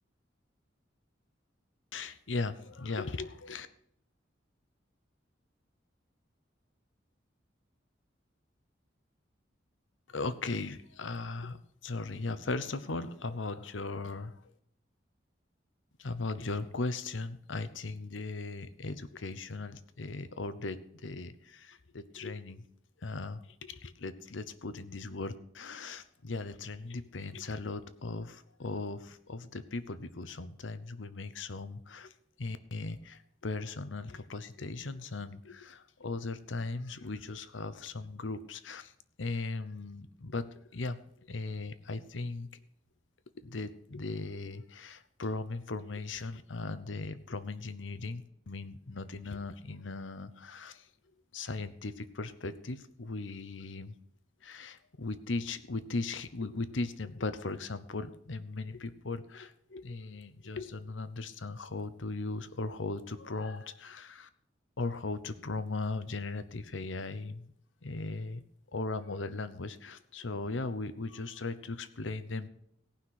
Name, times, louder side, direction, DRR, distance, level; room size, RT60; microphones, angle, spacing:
voice 1, 1.9-3.7 10.1-14.5 16.0-22.7 23.0-32.1 32.4-38.9 39.2-42.5 43.4-50.9 51.3-53.9 54.4-64.3 64.8-67.5 67.8-68.4 68.7-72.5, left 3 dB, 90° left, 13 dB, 0.9 m, -38 dB
17.5 x 5.9 x 6.0 m, 0.70 s
head